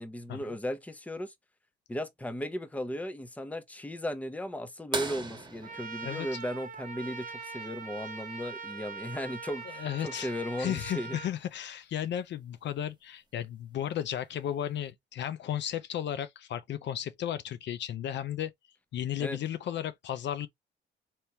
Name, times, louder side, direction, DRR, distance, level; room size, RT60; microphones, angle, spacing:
voice 1, 0.0-1.3 1.9-11.2 19.2-19.4, equal, 5° left, 0.6 m, -36 dB
sound 1, 4.9-7.4 9.3-9.4 11.6-11.7 13.4-13.7 14.5-14.6, right 3 dB, 20° right, 1.2 m, -38 dB
Trumpet, 5.6-11.3, right 4 dB, 45° right, 0.9 m, -42 dB
voice 2, 9.8-10.3 10.6-18.5 18.9-20.5, left 10 dB, 65° left, 0.5 m, -34 dB
3.4 x 2.8 x 2.8 m
cardioid pair, 90°, 20 cm